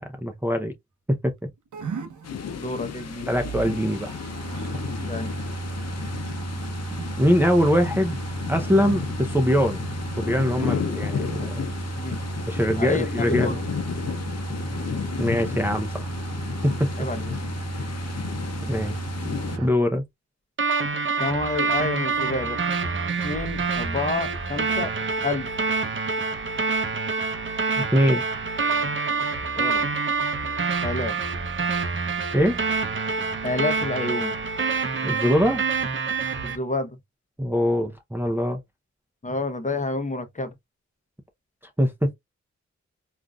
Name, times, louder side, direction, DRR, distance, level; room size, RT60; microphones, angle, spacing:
voice 1, 0.2-0.7 1.2-1.3 3.3-4.1 7.2-8.2 8.5-9.9 10.2-11.6 12.5-13.6 15.2-16.1 16.6-16.7 18.7-19.0 19.6-20.0 27.9-28.2 32.3-32.6 35.0-35.6 37.4-38.6 41.8-42.1, equal, 5° right, 0.6 m, -22 dB
sound 1, 1.7-19.7, right 3 dB, 90° right, 0.8 m, -33 dB
sound 2, 2.2-19.6, left 7 dB, 60° left, 0.6 m, -33 dB
voice 2, 2.6-3.3 5.1-5.4 10.6-10.9 12.0-12.2 12.8-13.6 17.0-17.4 21.2-22.6 23.2-24.9 25.2-25.5 29.6-29.9 30.8-31.2 33.4-34.3 36.4-37.0 39.2-40.5, left 2 dB, 25° left, 0.8 m, -29 dB
sound 3, 20.6-36.6, right 4 dB, 40° right, 0.7 m, -26 dB
3.7 x 2.5 x 2.3 m
cardioid pair, 65°, 29 cm